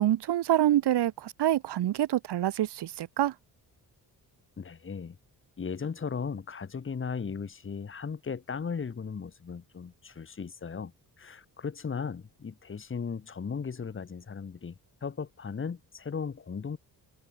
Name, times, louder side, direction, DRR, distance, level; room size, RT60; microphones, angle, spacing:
voice 1, 0.0-3.3, right 12 dB, 85° right, 2.2 m, -26 dB
voice 2, 4.6-5.2 5.6-10.9 11.2-16.8, left 6 dB, 30° left, 2.9 m, -37 dB
wide cardioid pair, 165°, 39 cm